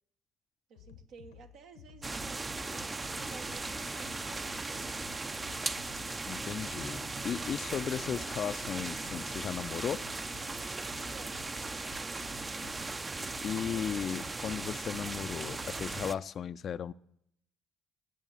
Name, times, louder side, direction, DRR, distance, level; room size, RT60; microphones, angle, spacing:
sound 1, 0.7-16.0, left 10 dB, 75° left, 0.9 m, -54 dB
voice 1, 0.7-5.2 11.0-12.2, right 5 dB, 60° right, 6 dB, 1.0 m, -54 dB
sound 2, 2.0-16.1, right 3 dB, 25° right, 0.6 m, -38 dB
voice 2, 6.3-10.0 13.4-16.9, left 8 dB, 50° left, 15 dB, 0.4 m, -36 dB
sound 3, 12.6-13.0 13.8-13.9, right 4 dB, 85° right, 1.5 m, -67 dB
19.0 x 7.1 x 7.0 m, 0.73 s
figure-of-eight pair, 45°, 0 cm